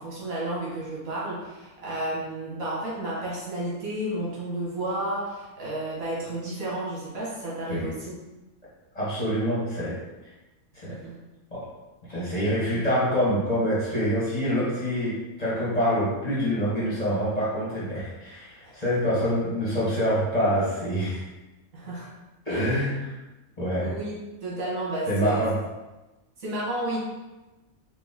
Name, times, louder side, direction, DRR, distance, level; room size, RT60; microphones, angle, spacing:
voice 1, 0.0-8.1 10.9-11.1 18.6-18.7 21.7-22.1 22.5-22.9 23.7-24.1 24.4-25.4 26.4-27.0, right 1 dB, 70° right, -7 dB, 1.7 m, -32 dB
voice 2, 8.9-10.0 10.7-11.0 11.5-11.7 12.1-21.2 22.4-23.1 23.6-23.9 25.1-25.6, equal, 30° left, -9 dB, 1.2 m, -26 dB
4.2 x 2.5 x 3.5 m, 1.1 s
omnidirectional pair, 1.5 m